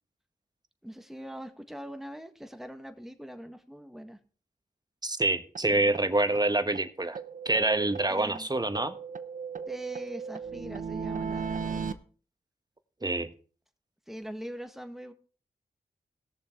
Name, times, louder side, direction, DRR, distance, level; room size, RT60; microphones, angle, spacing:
voice 1, 0.8-4.2 8.1-8.5 9.7-12.0 14.1-15.1, equal, ahead, 7 dB, 1.7 m, -42 dB
voice 2, 5.0-7.2 7.4-8.9 13.0-13.3, right 2 dB, 25° right, 10 dB, 1.4 m, -26 dB
sound 1, 5.5-5.6 5.9-6.0 6.3-6.4 6.7-6.8 7.1-8.4 8.7-11.9, right 6 dB, 55° right, 0.9 m, -36 dB
17.0 x 7.0 x 4.6 m, 0.39 s
cardioid pair, 50°, 16 cm